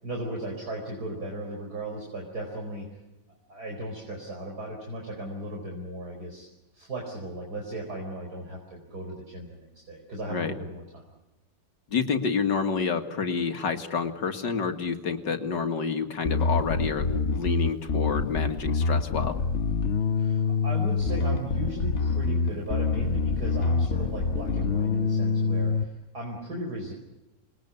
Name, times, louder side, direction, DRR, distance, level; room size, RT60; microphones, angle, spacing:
voice 1, 0.0-2.9 3.5-6.5 6.7-11.0 20.2-26.9, right 1 dB, 55° right, 0 dB, 5.3 m, -36 dB
voice 2, 11.9-19.4, left 5 dB, 70° left, 6 dB, 2.5 m, -28 dB
Bass guitar, 16.3-25.8, left 4 dB, 45° left, 1.2 m, -26 dB
28.0 x 21.5 x 8.5 m, 1.0 s
omnidirectional pair, 2.0 m